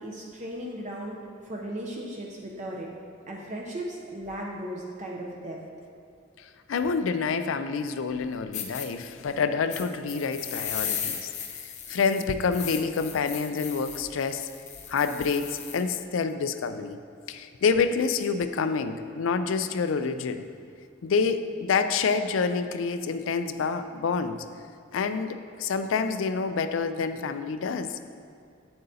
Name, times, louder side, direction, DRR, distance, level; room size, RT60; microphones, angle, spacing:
voice 1, 0.0-2.9 3.3-5.6, right 1 dB, 35° right, -2 dB, 0.7 m, -36 dB
voice 2, 6.4-11.3 11.6-14.5 14.9-17.0 17.3-20.4 21.0-24.4 24.9-28.0, left 5 dB, 75° left, 10 dB, 0.4 m, -27 dB
sound 1, 8.1-8.2 8.5-8.9 9.7-15.8, left 7 dB, 35° left, 0.7 m, -36 dB
8.7 x 7.7 x 2.8 m, 2.5 s
head